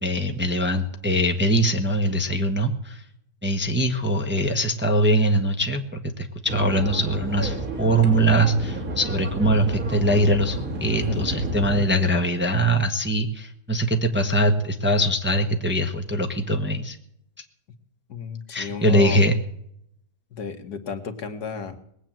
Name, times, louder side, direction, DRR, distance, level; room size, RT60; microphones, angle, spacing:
voice 1, 0.0-3.0 3.4-17.0 18.5-19.3, right 1 dB, 10° right, 4 dB, 1.1 m, -22 dB
sound 1, 6.5-11.8, right 2 dB, 50° right, 3.3 m, -31 dB
voice 2, 18.1-19.2 20.3-21.8, left 5 dB, 70° left, 7 dB, 1.9 m, -32 dB
20.0 x 8.5 x 7.6 m, 0.73 s
omnidirectional pair, 1.8 m